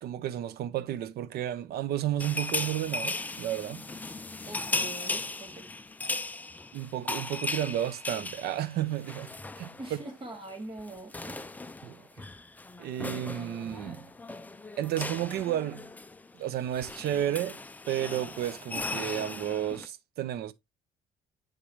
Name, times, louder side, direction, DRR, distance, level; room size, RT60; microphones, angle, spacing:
voice 1, 0.0-3.9 6.7-10.0 11.8-12.1 12.8-14.1 14.8-15.9 16.4-17.6 17.9-20.5, right 11 dB, 70° right, 0.8 m, -32 dB
sound 1, 2.2-10.1 10.3-10.5 10.8-19.9, left 3 dB, 10° left, 0.4 m, -37 dB
voice 2, 4.5-5.7 9.8-11.6, right 2 dB, 30° right, 2.5 m, -43 dB
9.9 x 3.8 x 3.1 m
cardioid pair, 110°, 17 cm